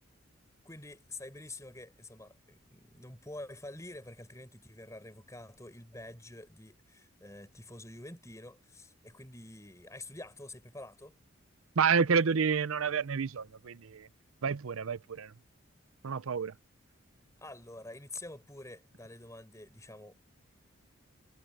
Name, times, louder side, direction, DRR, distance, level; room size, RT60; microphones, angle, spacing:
voice 1, 0.6-11.1 17.4-20.2, left 2 dB, 15° left, 4.9 m, -47 dB
voice 2, 11.8-14.1 14.4-15.3 16.0-16.5, right 6 dB, 85° right, 0.6 m, -29 dB
head